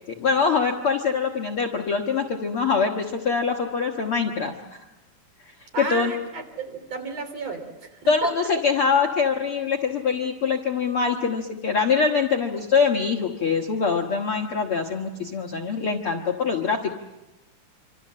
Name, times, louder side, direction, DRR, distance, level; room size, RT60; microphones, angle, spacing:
voice 1, 0.1-4.8 5.4-5.5 5.8-6.1 8.1-16.9, left 5 dB, 55° left, 2 dB, 1.7 m, -24 dB
voice 2, 5.7-8.5, right 3 dB, 50° right, 6 dB, 4.1 m, -33 dB
27.0 x 26.0 x 7.5 m, 1.0 s
omnidirectional pair, 4.0 m